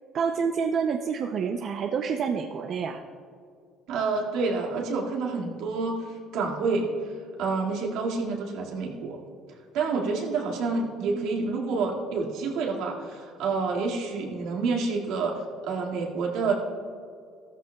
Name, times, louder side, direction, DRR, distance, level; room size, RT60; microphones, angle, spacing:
voice 1, 0.1-3.0 11.0-11.5, right 6 dB, 50° right, 4 dB, 0.6 m, -28 dB
voice 2, 3.9-6.9 7.4-9.2 9.7-16.6, right 4 dB, 80° right, -1 dB, 2.0 m, -28 dB
15.0 x 13.5 x 2.3 m, 2.2 s
cardioid pair, 130°, 0 cm